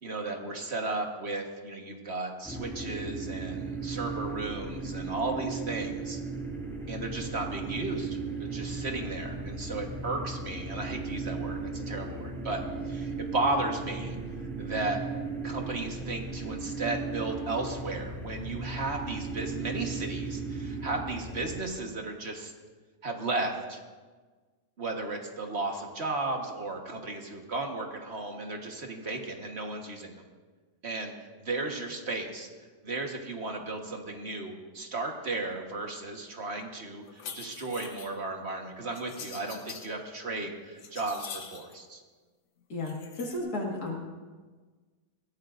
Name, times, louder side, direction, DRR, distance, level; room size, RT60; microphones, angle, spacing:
voice 1, 0.0-6.2 6.9-14.2 14.6-15.0 15.4-22.5 23.0-23.8 24.8-30.2 30.8-31.1 31.4-32.5 32.8-42.0, right 2 dB, 40° right, 2 dB, 1.7 m, -34 dB
sound 1, 2.4-21.6, right 4 dB, ahead, 2.4 m, -36 dB
sound 2, 37.1-38.1 38.9-39.9 40.4-41.7 42.8-43.4, left 6 dB, 80° left, 1.7 m, -44 dB
voice 2, 42.7-44.0, left 2 dB, 65° left, -2 dB, 2.4 m, -33 dB
21.5 x 16.0 x 2.6 m, 1.4 s
omnidirectional pair, 1.8 m